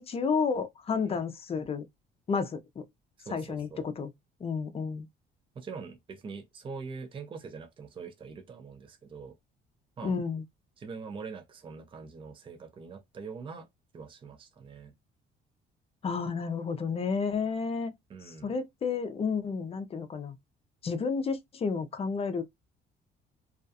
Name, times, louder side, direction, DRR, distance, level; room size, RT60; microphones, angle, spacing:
voice 1, 0.0-1.9 2.3-2.8 3.3-4.1 4.4-5.1 10.0-10.4 16.0-17.9 18.4-20.4 20.8-22.4, left 5 dB, 30° left, 0.5 m, -31 dB
voice 2, 3.2-3.9 5.6-9.3 10.0-10.2 10.8-13.7 13.9-14.9 18.1-18.5, right 5 dB, 25° right, 0.5 m, -43 dB
2.3 x 2.2 x 2.6 m
cardioid pair, 105°, 19 cm